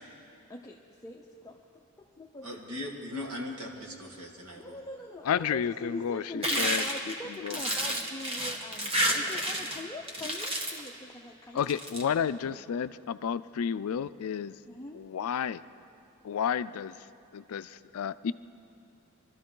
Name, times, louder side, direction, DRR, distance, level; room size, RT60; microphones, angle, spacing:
voice 1, 0.5-2.6 4.6-11.6 12.1-12.7 14.6-15.0, left 2 dB, 15° left, 0 dB, 0.6 m, -43 dB
voice 2, 2.4-4.8, left 1 dB, 80° right, 1 dB, 2.0 m, -39 dB
voice 3, 5.2-6.9 7.4-7.6 11.5-14.5 14.9-15.6 16.2-17.0 17.3-18.3, left 7 dB, 70° left, 15 dB, 0.4 m, -31 dB
sound 1, 6.4-9.8 10.1-10.9 11.6-12.0, right 1 dB, 25° right, 1.4 m, -30 dB
23.5 x 13.0 x 3.8 m, 2.9 s
head